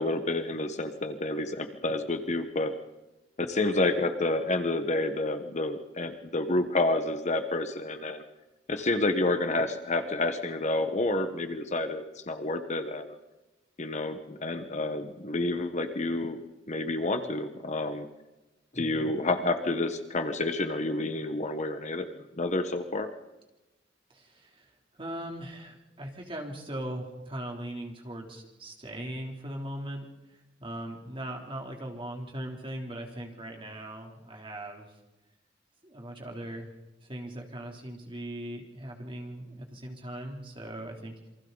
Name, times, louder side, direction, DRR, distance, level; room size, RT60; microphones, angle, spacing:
voice 1, 0.0-2.7 3.4-8.2 8.7-13.1 13.8-16.4 16.7-18.1 18.7-23.1, left 2 dB, 40° left, 8 dB, 1.3 m, -29 dB
voice 2, 18.7-19.1 24.1-24.7 25.0-35.0 35.8-36.7 37.0-41.3, right 1 dB, 30° right, 1 dB, 3.3 m, -39 dB
28.0 x 23.5 x 4.0 m, 1.0 s
head